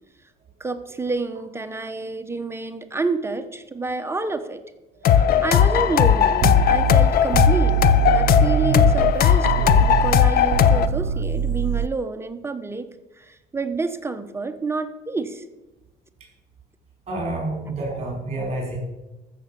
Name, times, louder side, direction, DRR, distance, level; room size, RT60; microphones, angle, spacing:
voice 1, 0.6-4.6 5.1-7.8 8.1-12.9 13.2-15.4, right 3 dB, 15° right, 8 dB, 1.0 m, -29 dB
sound 1, 5.0-10.9, left 9 dB, 60° left, 0.8 m, -17 dB
sound 2, 6.4-9.1 9.4-11.9, right 11 dB, 85° right, 0.4 m, -23 dB
voice 2, 17.1-18.8, right 2 dB, 40° right, -1 dB, 4.6 m, -28 dB
14.0 x 7.0 x 6.9 m, 1.1 s
cardioid pair, 110°, 17 cm